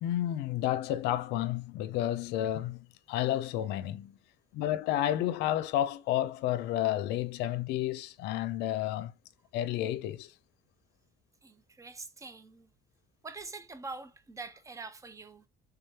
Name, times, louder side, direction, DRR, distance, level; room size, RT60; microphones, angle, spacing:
voice 1, 0.0-2.8 3.1-4.2 4.5-9.1 9.5-10.3, left 12 dB, 90° left, 0.5 m, -31 dB
voice 2, 11.4-12.7 13.2-15.4, right 3 dB, 20° right, 0.6 m, -44 dB
3.6 x 3.4 x 2.8 m
cardioid pair, 110°, 17 cm